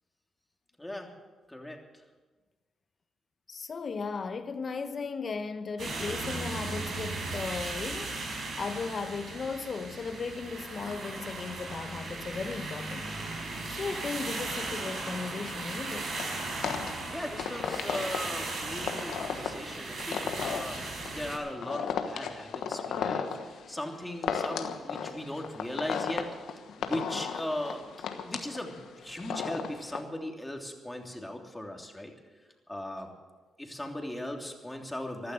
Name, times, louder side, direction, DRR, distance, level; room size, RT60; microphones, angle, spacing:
voice 1, 0.8-1.1 1.5-1.8 17.1-27.8 28.2-32.1 32.7-33.1 33.6-35.3, left 1 dB, 10° left, 3.1 m, -38 dB
voice 2, 3.5-8.2 8.6-13.1 13.8-16.1, left 4 dB, 50° left, 1.1 m, -36 dB
sound 1, 5.8-21.4, right 2 dB, 65° right, 5.4 m, -37 dB
sound 2, 16.2-30.0, left 7 dB, 75° left, 1.3 m, -35 dB
15.0 x 12.0 x 8.0 m
supercardioid pair, 55°, 0 cm